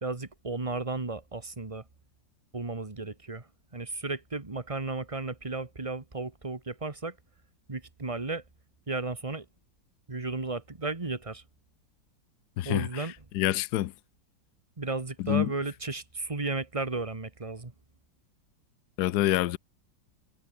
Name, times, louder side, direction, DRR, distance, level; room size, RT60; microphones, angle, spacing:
voice 1, 0.0-1.8 2.5-7.2 7.7-8.4 8.9-9.4 10.1-11.4 12.6-13.1 14.8-17.7, right 3 dB, 20° right, 1.5 m, -34 dB
voice 2, 12.6-13.1 13.3-13.9 15.2-15.5 19.0-19.6, left 15 dB, 65° left, 1.1 m, -26 dB
omnidirectional pair, 2.0 m